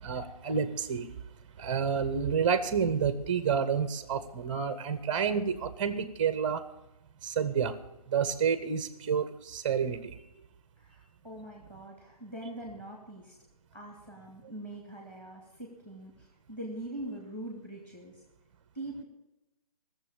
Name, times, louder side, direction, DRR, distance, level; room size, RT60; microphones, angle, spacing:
voice 1, 0.0-1.1 1.6-6.6 7.2-7.8 8.1-10.2, right 6 dB, 15° right, 12 dB, 0.7 m, -29 dB
voice 2, 10.8-13.4 13.7-18.2 18.7-19.0, right 1 dB, 5° left, 0 dB, 2.1 m, -43 dB
16.0 x 7.3 x 8.8 m, 0.93 s
hypercardioid pair, 165°, 19 cm